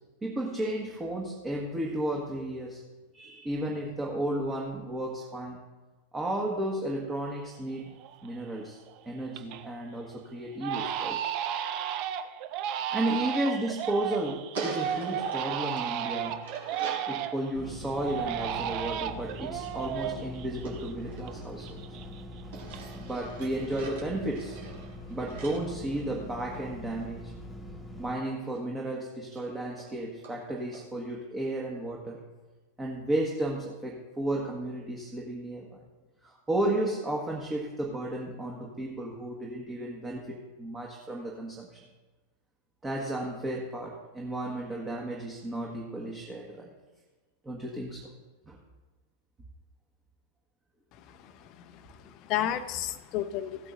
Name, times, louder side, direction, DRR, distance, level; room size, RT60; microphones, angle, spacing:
voice 1, 0.2-2.8 3.1-5.6 6.1-7.9 8.2-8.8 9.0-11.2 12.9-16.5 17.1-21.8 22.9-24.6 25.1-27.4 28.0-32.2 32.8-35.8 36.2-41.8 42.8-46.7 47.4-48.1 48.5-48.6, right 1 dB, 15° right, -1 dB, 1.6 m, -33 dB
Crying sobbing, 7.4-7.5 8.0-8.5 8.9-9.7 10.0-10.2 10.6-17.5 18.0-21.3 21.6-23.1 23.4-23.9, right 9 dB, 40° right, 0.7 m, -34 dB
sound 1, 14.5-17.1 20.6-22.0 22.5-26.6 28.5-28.6 28.9-29.0 29.4-29.5 29.8-29.9 30.2-30.4 30.7-30.8, right 4 dB, 60° right, 3.5 m, -42 dB
sound 2, 17.5-28.2, left 1 dB, 10° left, 1.7 m, -43 dB
voice 2, 51.1-53.7, left 11 dB, 40° left, 11 dB, 0.7 m, -33 dB
16.5 x 8.5 x 2.6 m, 1.2 s
figure-of-eight pair, 90°, 0 cm